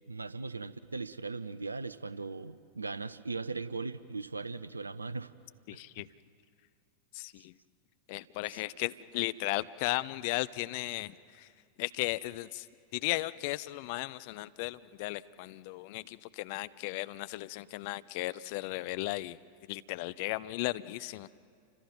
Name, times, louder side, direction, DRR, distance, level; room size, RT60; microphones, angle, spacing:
voice 1, 0.1-5.3, right 3 dB, 80° right, 17 dB, 0.6 m, -38 dB
voice 2, 5.7-6.1 7.1-7.5 8.1-11.5 11.8-12.7 12.9-19.4 19.7-21.4, left 19 dB, 50° left, 16 dB, 0.5 m, -36 dB
29.5 x 25.5 x 5.4 m, 2.2 s
figure-of-eight pair, 90°, 0 cm